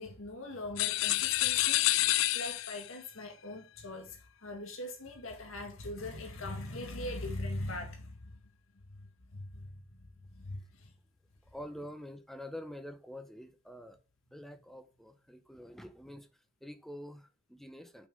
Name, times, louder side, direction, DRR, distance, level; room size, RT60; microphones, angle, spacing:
voice 1, 0.0-8.4 8.7-10.9, left 1 dB, 85° left, 2.0 m, -41 dB
sound 1, 0.8-2.9, left 17 dB, 65° left, 0.3 m, -28 dB
voice 2, 11.5-14.0 14.3-16.3 16.6-18.1, left 1 dB, ahead, 0.8 m, -46 dB
6.2 x 5.9 x 5.4 m
head